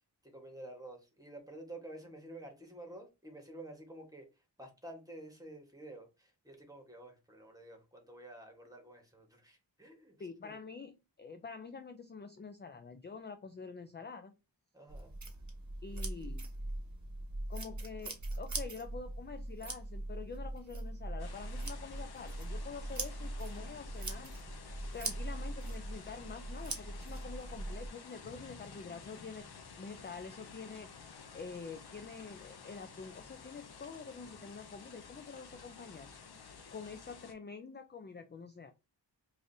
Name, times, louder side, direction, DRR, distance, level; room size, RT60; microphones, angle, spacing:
voice 1, 0.2-10.2 10.4-10.6 14.7-15.1, right 1 dB, 10° right, 1.3 m, -50 dB
voice 2, 10.2-14.3 15.8-16.5 17.5-24.3 24.9-29.5 29.8-30.9 31.3-36.1 36.7-38.7, left 5 dB, 25° left, 0.3 m, -47 dB
sound 1, 14.9-27.9, right 2 dB, 40° right, 1.0 m, -41 dB
sound 2, 21.2-37.3, left 5 dB, 60° left, 0.7 m, -52 dB
4.8 x 2.6 x 2.6 m
wide cardioid pair, 75°, 44 cm